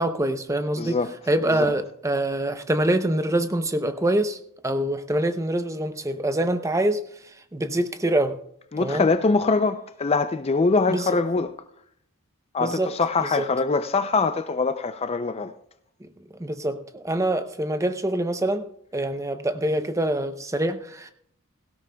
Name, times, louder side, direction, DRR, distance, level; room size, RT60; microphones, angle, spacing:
voice 1, 0.0-1.0 1.3-4.4 4.6-7.0 7.5-8.4 8.8-9.1 10.9-11.1 12.6-12.9 13.2-13.4 16.0-16.1 16.4-21.1, right 1 dB, 15° right, 0.6 m, -25 dB
voice 2, 0.8-1.1 1.5-1.7 8.7-11.5 12.5-15.5, left 4 dB, 30° left, 0.4 m, -23 dB
17.5 x 16.5 x 2.3 m
head